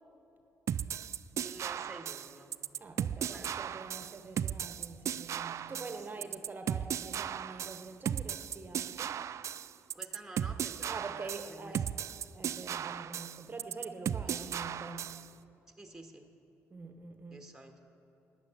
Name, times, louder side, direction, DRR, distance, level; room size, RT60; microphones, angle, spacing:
sound 1, 0.7-15.3, right 9 dB, 60° right, 0.4 m, -36 dB
voice 1, 1.3-2.5 3.2-3.7 6.0-6.3 8.8-9.0 9.9-12.2 14.2-14.6 15.8-16.3 17.3-17.9, right 2 dB, 5° right, 5 dB, 1.7 m, -51 dB
voice 2, 2.8-9.3 10.9-11.8 12.3-15.2 16.7-17.4, right 3 dB, 35° right, 7 dB, 1.1 m, -45 dB
12.5 x 8.9 x 8.2 m, 3.0 s
cardioid pair, 75°, 6 cm